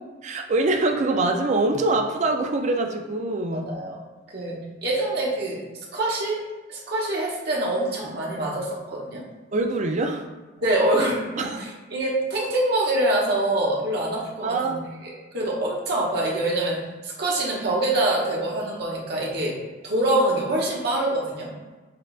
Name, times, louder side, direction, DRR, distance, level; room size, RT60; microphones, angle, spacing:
voice 1, 0.2-3.7 9.5-10.3 11.4-11.6 14.4-14.9, right 2 dB, 40° right, 4 dB, 0.4 m, -24 dB
voice 2, 3.5-4.0 4.3-4.5 4.8-5.6 5.9-6.4 6.7-9.2 10.6-14.8 15.0-16.8 17.0-19.5 19.8-21.5, right 1 dB, 60° right, -3 dB, 1.0 m, -25 dB
6.5 x 2.3 x 2.4 m, 1.3 s
head